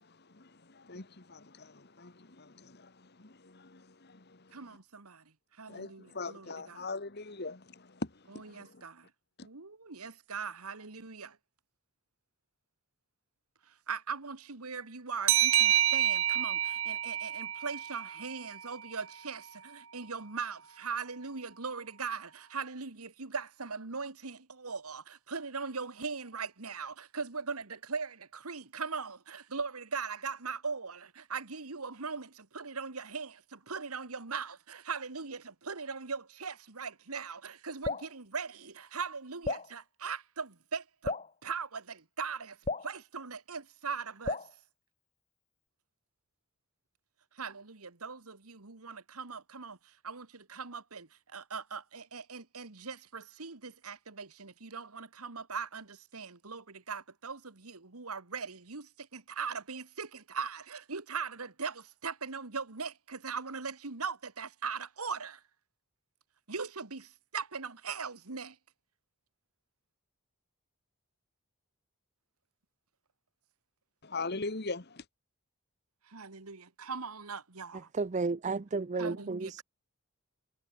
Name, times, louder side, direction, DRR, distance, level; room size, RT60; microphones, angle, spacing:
voice 1, 0.0-4.6 5.7-8.8 9.4-9.5 74.0-75.0, left 3 dB, 50° left, 1.7 m, -42 dB
voice 2, 4.5-5.2 5.6-6.9 8.4-9.1 9.4-11.4 13.7-41.2 41.4-42.6 42.8-44.4 47.3-65.4 66.5-68.6 76.1-77.9 79.0-79.6, right 5 dB, 90° right, 1.9 m, -40 dB
sound 1, 15.3-18.6, right 12 dB, 65° right, 1.6 m, -28 dB
Drip, 37.8-38.1 39.4-39.7 41.0-41.3 42.6-42.9 44.3-44.5, left 3 dB, 30° left, 2.3 m, -34 dB
voice 3, 77.7-79.6, right 4 dB, 35° right, 0.5 m, -33 dB
head